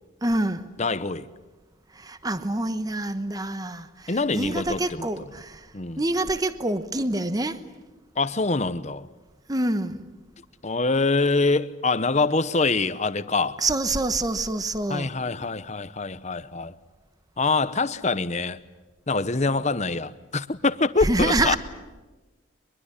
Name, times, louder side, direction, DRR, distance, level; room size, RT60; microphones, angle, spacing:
voice 1, 0.2-0.6 2.0-5.6 6.0-7.6 9.5-10.1 13.6-15.1 21.0-21.6, right 2 dB, 20° right, 1.1 m, -26 dB
voice 2, 0.8-1.3 4.1-5.1 5.7-6.0 8.2-9.1 10.6-13.6 14.9-16.7 17.4-18.6 19.1-21.6, left 3 dB, 35° left, 0.9 m, -25 dB
23.5 x 22.5 x 9.9 m
head